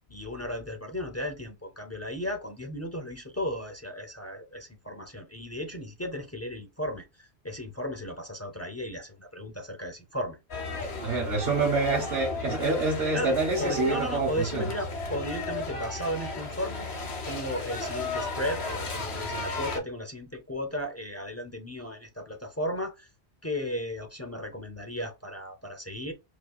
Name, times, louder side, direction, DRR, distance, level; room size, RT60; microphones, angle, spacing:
voice 1, 0.1-10.4 13.1-23.1 23.4-26.1, left 1 dB, 20° left, 0.4 m, -35 dB
sound 1, 10.5-19.8, left 2 dB, 70° left, 1.3 m, -34 dB
voice 2, 11.0-14.6, right 3 dB, 65° right, 1.2 m, -27 dB
4.9 x 2.3 x 2.3 m
omnidirectional pair, 1.1 m